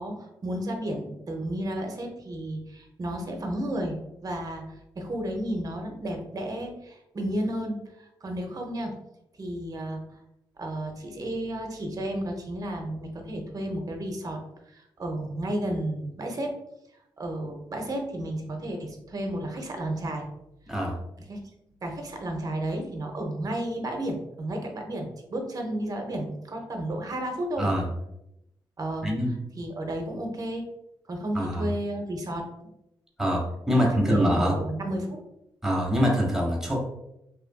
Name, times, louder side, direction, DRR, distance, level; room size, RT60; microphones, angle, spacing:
voice 1, 0.0-9.0 9.4-10.0 10.6-14.4 14.7-16.5 17.2-20.3 21.3-21.4 21.8-27.7 28.8-29.1 29.6-30.7 31.1-32.5 33.7-33.8 34.1-35.2, right 1 dB, 40° right, 3 dB, 0.6 m, -32 dB
voice 2, 20.7-21.0 27.6-27.9 29.0-29.3 31.3-31.7 33.2-34.6 35.6-36.8, equal, 5° right, -2 dB, 0.9 m, -24 dB
2.7 x 2.5 x 2.2 m, 0.84 s
cardioid pair, 80°, 9 cm